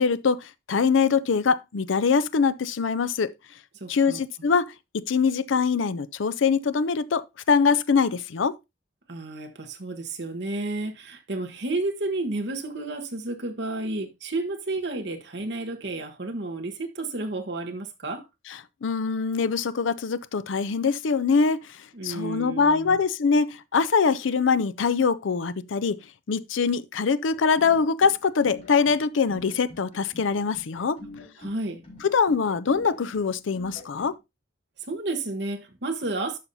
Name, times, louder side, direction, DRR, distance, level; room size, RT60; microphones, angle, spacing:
voice 1, 0.0-3.3 3.9-8.6 18.5-21.6 22.0-26.0 26.3-31.0 32.0-34.2, left 5 dB, 90° left, 0.5 m, -23 dB
voice 2, 3.8-4.2 9.1-18.3 21.9-23.0 31.4-31.8 34.9-36.4, right 2 dB, 60° right, 1.3 m, -31 dB
sound 1, 27.3-34.2, left 1 dB, 35° left, 3.8 m, -46 dB
11.5 x 5.6 x 2.7 m
head